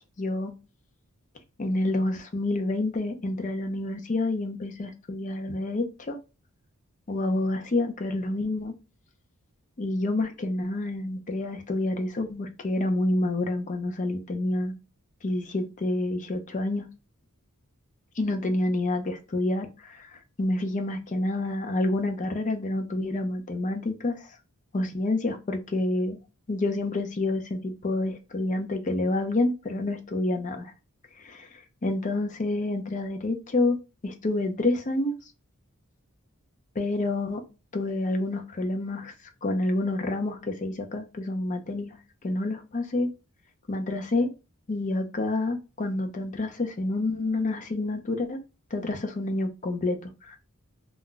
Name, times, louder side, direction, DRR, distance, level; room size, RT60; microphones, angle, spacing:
voice 1, 0.2-0.5 1.6-6.2 7.1-8.7 9.8-14.7 15.2-16.9 18.2-24.3 24.7-26.2 26.5-30.7 31.2-33.8 34.0-35.2 36.8-37.4 37.7-39.1 39.4-42.0 42.2-43.1 43.7-44.3 44.7-48.4 48.7-50.4, left 2 dB, 35° left, 0.5 m, -28 dB
2.3 x 2.1 x 3.7 m
head